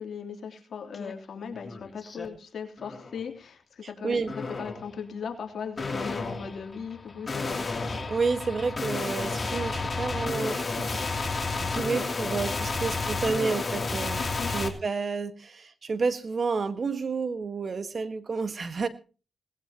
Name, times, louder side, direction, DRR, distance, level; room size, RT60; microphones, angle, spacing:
voice 1, 0.0-7.6 14.2-14.5, left 6 dB, 70° left, 3 dB, 3.2 m, -38 dB
sound 1, 0.9-1.1 1.5-2.3 2.8-3.2 4.3-4.9 5.8-14.7, left 3 dB, 35° left, 3.0 m, -31 dB
voice 2, 3.8-4.3 8.1-18.9, right 4 dB, 50° right, 11 dB, 1.6 m, -30 dB
19.0 x 17.5 x 3.0 m, 0.35 s
cardioid pair, 75°, 0 cm